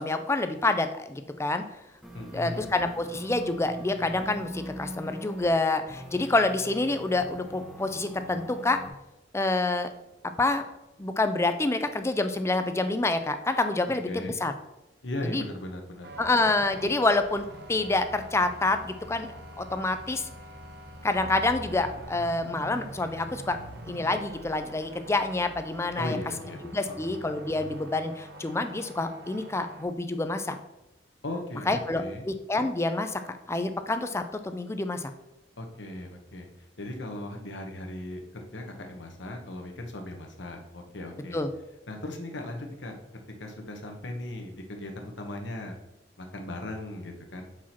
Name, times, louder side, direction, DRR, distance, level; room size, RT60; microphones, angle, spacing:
voice 1, 0.0-1.6 2.3-8.8 9.3-9.9 10.4-10.6 11.0-14.5 15.2-15.4 16.2-19.3 19.6-20.3 21.0-23.6 23.9-26.2 26.6-30.6 31.7-35.1 41.3-41.5, left 2 dB, 15° left, 8 dB, 0.4 m, -27 dB
sound 1, 2.0-5.5 5.9-8.9, equal, ahead, 0.8 m, -41 dB
voice 2, 2.1-2.7 14.1-14.4 15.0-16.1 26.0-26.6 26.9-27.1 31.2-32.3 35.6-36.5 36.8-41.4 41.9-43.0 43.4-45.8 46.2-47.6, left 1 dB, 75° left, 3 dB, 1.1 m, -37 dB
sound 2, 16.0-29.8, right 1 dB, 60° right, 0.9 m, -44 dB
4.8 x 4.4 x 5.8 m, 0.92 s
head